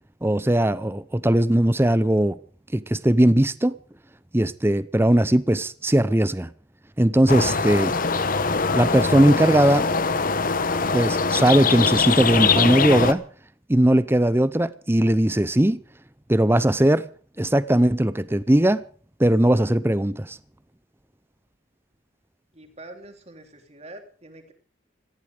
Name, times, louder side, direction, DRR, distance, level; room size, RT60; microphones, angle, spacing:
voice 1, 0.2-2.4 2.7-3.8 4.3-6.5 7.0-7.9 8.7-9.9 10.9-13.2 13.7-15.8 16.3-17.0 17.4-18.8 19.2-20.4, right 1 dB, 10° right, 0.7 m, -19 dB
sound 1, 7.3-13.1, left 4 dB, 45° left, 1.2 m, -22 dB
voice 2, 22.5-24.5, right 2 dB, 35° right, 3.4 m, -44 dB
18.5 x 14.5 x 5.0 m
head